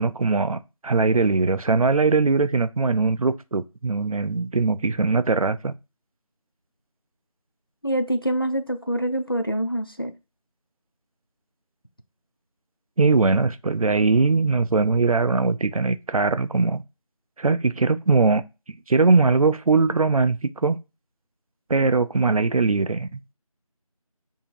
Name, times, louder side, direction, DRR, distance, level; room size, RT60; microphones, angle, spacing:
voice 1, 0.0-5.7 13.0-16.8 17.4-18.4 18.9-20.8 21.7-23.3, right 4 dB, 70° right, 0.4 m, -21 dB
voice 2, 7.8-10.1, right 1 dB, 40° left, 0.4 m, -25 dB
2.8 x 2.7 x 4.4 m
figure-of-eight pair, 170°, 19 cm